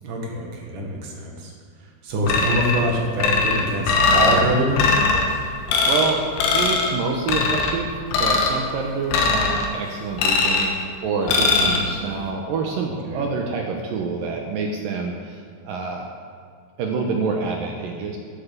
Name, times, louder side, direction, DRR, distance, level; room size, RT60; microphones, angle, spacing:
voice 1, 0.0-1.5 1.8-5.0 11.6-11.9 13.1-13.3, right 1 dB, 55° right, -1 dB, 2.8 m, -25 dB
sound 1, 2.3-2.8 3.2-4.4 4.8-5.3 5.7-6.1 6.4-6.9 7.3-7.7 8.1-8.6 9.1-9.7 10.2-10.7 11.3-11.8, left 3 dB, 90° left, 3.6 m, -20 dB
voice 2, 5.9-6.2 6.5-10.8 11.0-16.1 16.8-18.2, right 4 dB, 75° right, 1 dB, 2.1 m, -27 dB
11.5 x 7.8 x 7.2 m, 2.2 s
omnidirectional pair, 5.2 m